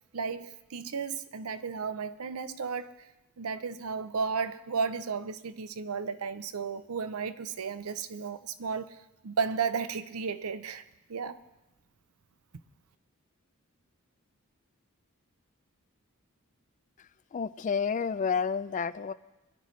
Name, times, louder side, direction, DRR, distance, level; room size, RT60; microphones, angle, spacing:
voice 1, 0.1-3.1 3.4-9.0 9.2-10.8 11.1-11.4, right 5 dB, 80° right, 0.6 m, -34 dB
voice 2, 17.3-19.1, left 6 dB, 35° left, 0.4 m, -30 dB
23.0 x 11.0 x 3.2 m
head